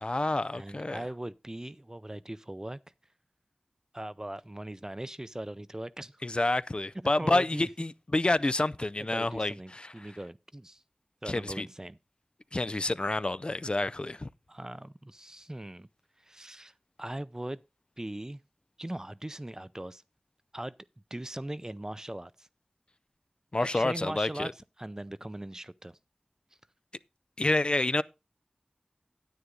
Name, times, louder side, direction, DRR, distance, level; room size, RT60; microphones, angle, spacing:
voice 1, 0.0-1.0 6.2-10.1 11.3-11.7 12.5-14.3 23.5-24.5 27.4-28.0, left 2 dB, 45° left, 0.5 m, -28 dB
voice 2, 0.5-2.8 3.9-6.2 7.2-7.6 9.0-10.8 11.2-12.0 14.5-15.9 16.2-16.7 17.0-17.6 18.0-18.4 18.8-20.0 20.5-20.7 21.1-22.5 23.6-24.5 24.8-25.9, right 1 dB, 25° right, 0.5 m, -40 dB
9.8 x 9.4 x 3.8 m
wide cardioid pair, 45°, 2 cm